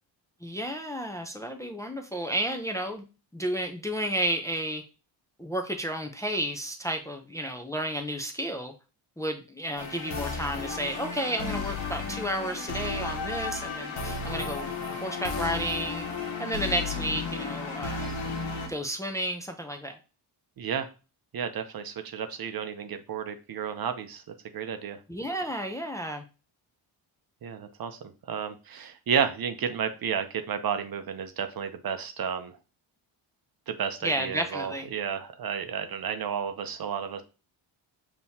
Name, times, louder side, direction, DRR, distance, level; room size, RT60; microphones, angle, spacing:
voice 1, 0.4-3.0 3.3-4.8 5.4-8.7 9.2-16.1 16.4-18.2 18.7-20.0 25.1-26.2 34.0-34.9, right 1 dB, 5° left, 5 dB, 0.5 m, -32 dB
sound 1, 9.8-18.7, left 4 dB, 70° left, 1.2 m, -33 dB
voice 2, 20.6-20.9 21.3-24.2 24.5-25.0 27.4-28.0 28.3-32.5 33.7-37.2, right 7 dB, 50° right, 9 dB, 0.6 m, -32 dB
5.4 x 2.9 x 2.7 m, 0.32 s
cardioid pair, 75°, 47 cm